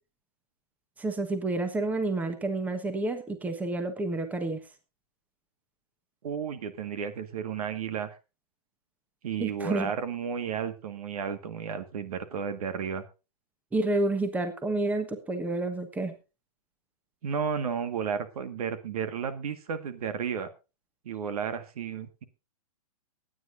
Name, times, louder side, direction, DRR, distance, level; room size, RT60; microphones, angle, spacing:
voice 1, 1.0-4.6 9.4-9.9 13.7-16.1, right 2 dB, 10° right, 9 dB, 1.2 m, -29 dB
voice 2, 6.2-8.1 9.2-13.0 17.2-20.5 21.0-22.2, right 7 dB, 65° right, 10 dB, 1.7 m, -33 dB
22.5 x 9.6 x 2.6 m, 0.29 s
hypercardioid pair, 140°, 20 cm